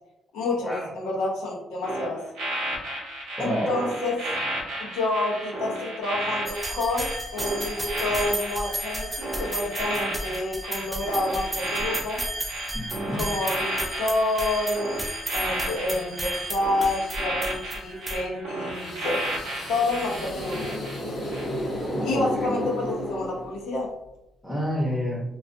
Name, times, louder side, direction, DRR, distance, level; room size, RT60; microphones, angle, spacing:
voice 1, 0.3-2.2 3.4-4.2 4.8-12.2 13.1-15.1 15.3-19.2 19.7-20.7 22.0-23.9, left 2 dB, 90° left, -2 dB, 0.7 m, -28 dB
sound 1, 1.8-21.0 21.3-21.6, right 1 dB, 90° right, 0.8 m, -33 dB
voice 2, 3.4-3.7 12.7-13.2 21.9-22.5 24.4-25.2, equal, ahead, -3 dB, 0.8 m, -29 dB
sound 2, 6.5-18.2, right 1 dB, 15° right, 0.5 m, -34 dB
sound 3, 18.7-23.8, left 1 dB, 45° left, 0.8 m, -32 dB
2.4 x 2.3 x 2.5 m, 0.90 s
cardioid pair, 90°, 0 cm